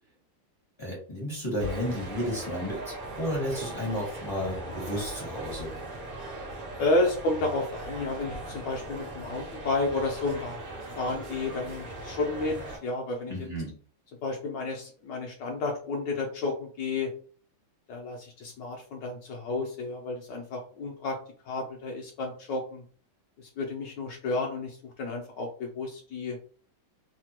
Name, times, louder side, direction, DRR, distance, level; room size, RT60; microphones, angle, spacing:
voice 1, 0.8-5.7 13.3-13.7, equal, 25° left, -4 dB, 0.6 m, -32 dB
sound 1, 1.6-12.8, right 2 dB, 45° right, 0.7 m, -39 dB
voice 2, 6.8-10.7 11.0-13.3 14.2-17.1 17.9-21.2 21.5-22.8 23.6-26.4, left 2 dB, 75° left, 0 dB, 1.2 m, -31 dB
3.4 x 2.2 x 2.9 m, 0.43 s
omnidirectional pair, 2.1 m